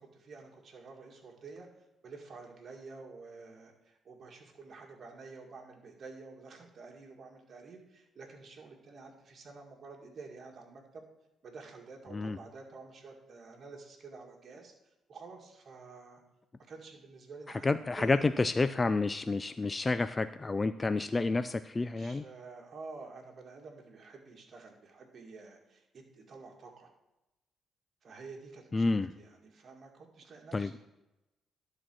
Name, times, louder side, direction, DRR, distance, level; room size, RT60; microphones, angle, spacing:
voice 1, 0.0-1.7 2.0-11.1 11.4-14.7 15.1-16.2 16.7-18.2 21.8-26.9 28.0-30.8, right 4 dB, 50° right, 1 dB, 2.0 m, -50 dB
voice 2, 17.6-22.2 28.7-29.1 30.5-30.7, left 3 dB, 25° left, 11 dB, 0.3 m, -29 dB
11.0 x 4.3 x 6.2 m, 0.93 s
cardioid pair, 90°, 0 cm